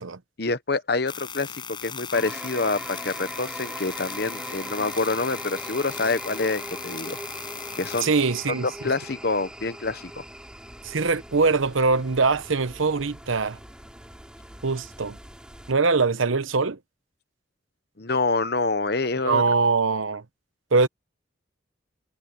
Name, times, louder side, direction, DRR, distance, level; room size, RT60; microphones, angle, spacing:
voice 1, 0.4-7.2 7.8-8.1 8.6-10.2 18.0-19.4, left 3 dB, 50° left, 1.0 m, -27 dB
sound 1, 1.1-8.1, left 6 dB, 25° left, 8.0 m, -38 dB
sound 2, 2.1-15.7, right 1 dB, 5° right, 4.0 m, -40 dB
voice 2, 8.0-8.7 10.8-13.6 14.6-15.2 15.7-16.8 19.2-20.2 20.7-20.9, right 4 dB, 85° right, 0.9 m, -22 dB
head